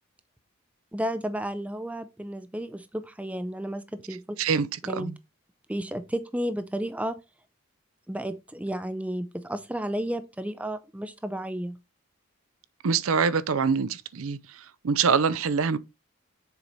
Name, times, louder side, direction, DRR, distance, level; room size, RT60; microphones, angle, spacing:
voice 1, 0.9-4.4 4.9-5.1 5.7-7.2 8.1-11.8, equal, 5° right, 0.5 m, -32 dB
voice 2, 4.4-5.1 12.8-15.8, right 5 dB, 70° right, 0.5 m, -25 dB
7.0 x 4.7 x 4.0 m
head